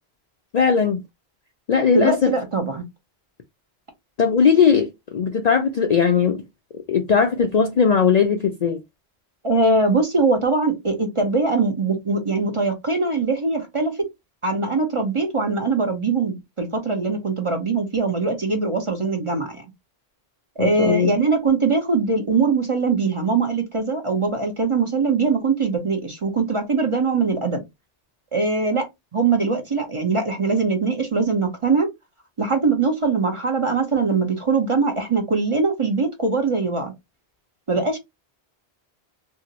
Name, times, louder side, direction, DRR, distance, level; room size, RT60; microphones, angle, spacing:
voice 1, 0.5-1.0 1.7-2.3 4.2-6.4 6.9-8.8 20.6-21.1, left 6 dB, 55° left, 0.4 m, -18 dB
voice 2, 1.9-2.8 9.4-14.1 14.4-19.6 20.6-27.6 28.3-28.9 29.1-31.9 32.4-36.9 37.7-38.0, right 4 dB, 35° right, 0.7 m, -22 dB
2.7 x 2.7 x 2.9 m
omnidirectional pair, 1.1 m